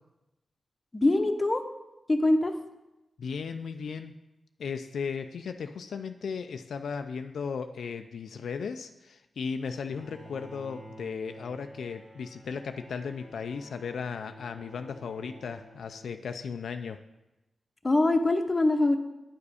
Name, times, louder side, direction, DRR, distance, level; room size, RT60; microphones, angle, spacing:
voice 1, 0.9-1.6 2.1-2.5 17.8-19.0, left 2 dB, 25° left, 6 dB, 0.8 m, -23 dB
voice 2, 3.2-4.1 4.6-17.0, left 6 dB, 85° left, 8 dB, 0.3 m, -36 dB
Bowed string instrument, 9.8-16.6, right 1 dB, 85° right, 3.1 m, -50 dB
9.2 x 4.9 x 4.9 m, 0.99 s
cardioid pair, 75°, 0 cm